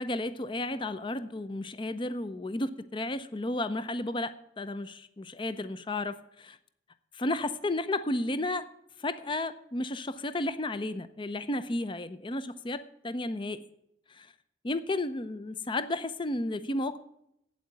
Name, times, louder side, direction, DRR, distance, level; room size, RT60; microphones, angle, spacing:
voice 1, 0.0-6.6 7.1-8.7 9.0-13.7 14.1-14.3 14.6-17.0, left 2 dB, 30° left, 13 dB, 0.6 m, -33 dB
8.6 x 8.5 x 9.1 m, 0.77 s
head